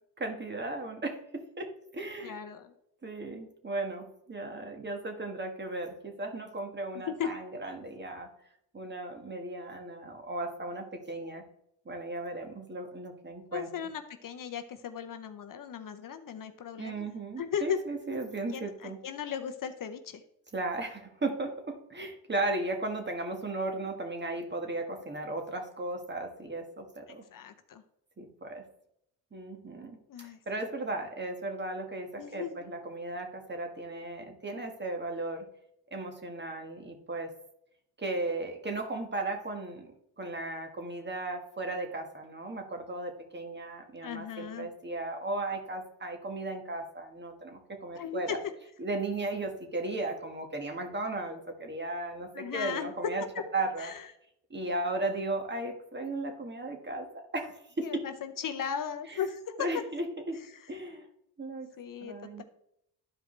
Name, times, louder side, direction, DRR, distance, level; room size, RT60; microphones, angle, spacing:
voice 1, 0.2-2.4 3.0-8.3 8.7-11.4 11.8-13.7 16.8-19.0 20.5-27.2 28.2-28.6 29.3-35.4 35.9-37.3 38.0-39.9 40.2-48.4 48.8-53.2 53.5-53.9 54.5-58.0 59.1-59.3 59.6-60.4 60.7-61.1 61.4-61.7 62.0-62.4, right 2 dB, 25° right, 4 dB, 1.5 m, -36 dB
voice 2, 2.2-2.8 6.9-7.3 13.5-17.8 18.5-20.2 27.3-27.8 30.1-30.4 32.2-32.6 44.0-44.7 47.9-48.4 52.3-52.9 53.8-54.1 57.8-59.7 61.8-62.4, left 8 dB, 50° left, 8 dB, 0.7 m, -37 dB
12.0 x 4.9 x 3.2 m, 0.76 s
cardioid pair, 80°, 41 cm